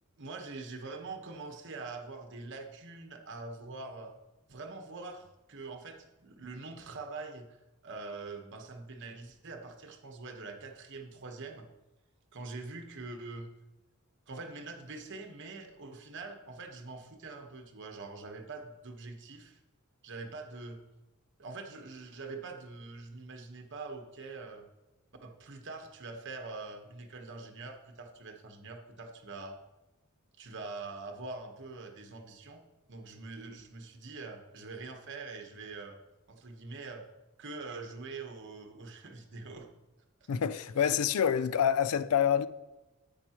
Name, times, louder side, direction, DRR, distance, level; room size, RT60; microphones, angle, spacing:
voice 1, 0.2-4.1 4.5-7.6 7.8-11.6 12.3-13.5 14.3-19.6 20.0-20.8 21.4-24.7 25.2-29.6 30.4-32.6 32.9-36.0 36.3-37.0 37.4-39.7 40.8-41.0, right 3 dB, 55° right, 1.1 m, -44 dB
voice 2, 40.3-42.5, left 8 dB, 85° left, 0.4 m, -27 dB
10.5 x 8.6 x 3.0 m
head